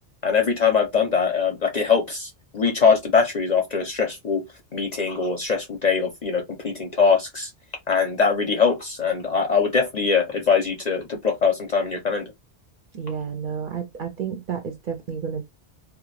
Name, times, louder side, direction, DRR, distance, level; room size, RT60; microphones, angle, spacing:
voice 1, 0.2-4.4 4.7-7.5 7.9-12.3, left 5 dB, 50° left, 0.5 m, -22 dB
voice 2, 12.9-15.4, right 7 dB, 60° right, 0.6 m, -31 dB
2.2 x 2.2 x 3.0 m
omnidirectional pair, 1.2 m